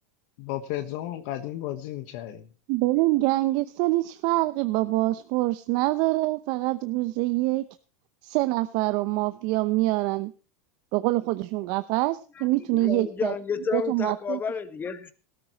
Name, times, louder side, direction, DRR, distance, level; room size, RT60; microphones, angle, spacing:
voice 1, 0.4-2.5, left 13 dB, 60° left, 9 dB, 1.4 m, -33 dB
voice 2, 2.7-7.6 8.2-10.3 10.9-13.3 13.7-14.4, right 19 dB, 55° right, 12 dB, 0.7 m, -25 dB
voice 3, 12.4-15.1, left 6 dB, 25° left, 11 dB, 1.6 m, -31 dB
18.5 x 13.0 x 3.0 m, 0.35 s
hypercardioid pair, 115°, 9 cm